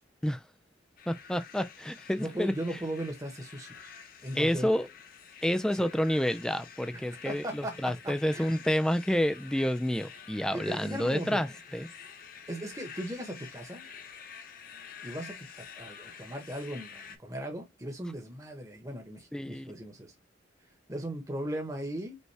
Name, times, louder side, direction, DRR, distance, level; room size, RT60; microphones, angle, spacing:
sound 1, 1.0-17.2, left 7 dB, 45° left, 0.7 m, -49 dB
voice 1, 1.1-2.5 4.4-4.9 5.4-11.9 19.3-19.7, equal, 5° left, 0.3 m, -29 dB
voice 2, 2.2-3.9 4.2-4.8 5.7-5.9 6.9-8.6 10.5-11.4 12.5-13.9 15.0-20.1 20.9-22.2, right 1 dB, 15° right, 0.8 m, -38 dB
5.3 x 2.2 x 3.3 m
head